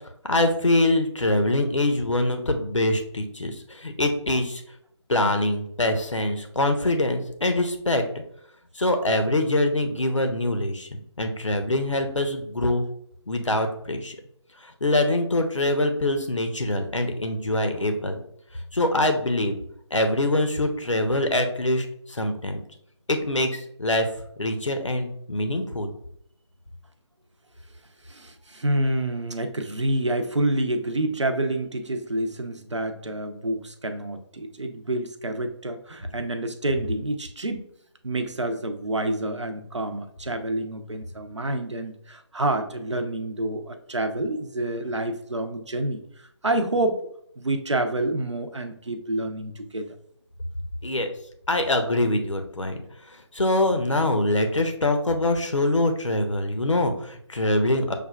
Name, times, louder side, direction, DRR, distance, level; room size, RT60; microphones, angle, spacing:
voice 1, 0.3-4.6 5.1-8.2 8.7-12.8 13.3-14.2 14.6-18.2 18.7-19.6 19.9-22.6 23.1-24.1 24.4-25.9 50.8-51.1 51.5-52.8 53.1-57.9, left 1 dB, 85° left, 5 dB, 0.8 m, -24 dB
voice 2, 28.1-37.7 38.0-46.0 46.4-47.0 47.4-49.9, right 1 dB, 75° right, 7 dB, 0.7 m, -28 dB
6.6 x 2.3 x 2.3 m, 0.70 s
figure-of-eight pair, 160°, 15 cm